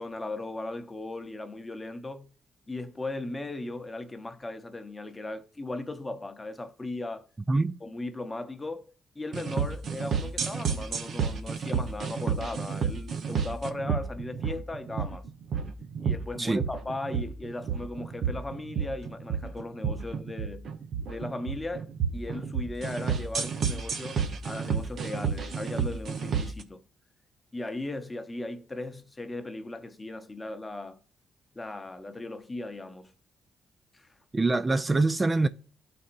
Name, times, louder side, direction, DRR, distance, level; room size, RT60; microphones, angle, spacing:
voice 1, 0.0-2.3 2.7-7.3 7.8-15.3 16.0-20.7 21.1-26.8 27.5-31.0 31.6-33.1 33.9-34.1, left 2 dB, 25° left, 0.8 m, -37 dB
sound 1, 9.3-26.6, right 6 dB, 65° right, 0.8 m, -31 dB
voice 2, 34.3-35.5, right 3 dB, 30° right, 0.4 m, -24 dB
12.5 x 4.2 x 2.5 m
supercardioid pair, 60°, 0 cm